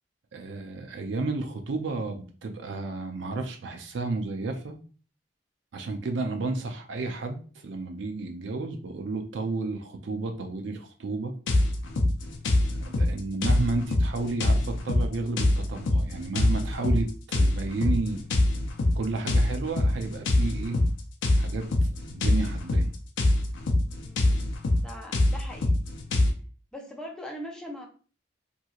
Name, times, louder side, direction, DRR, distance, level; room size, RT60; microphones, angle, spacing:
voice 1, 0.3-4.8 5.7-7.4 7.6-11.3 12.8-18.2 18.9-20.8 21.4-21.7 22.1-22.9, right 3 dB, 70° right, 4 dB, 0.5 m, -32 dB
sound 1, 11.5-26.3, left 1 dB, 80° left, 0.5 m, -24 dB
voice 2, 23.9-24.4 24.8-25.8 26.7-27.9, equal, 5° left, 0 dB, 0.5 m, -41 dB
2.9 x 2.7 x 2.3 m, 0.39 s
head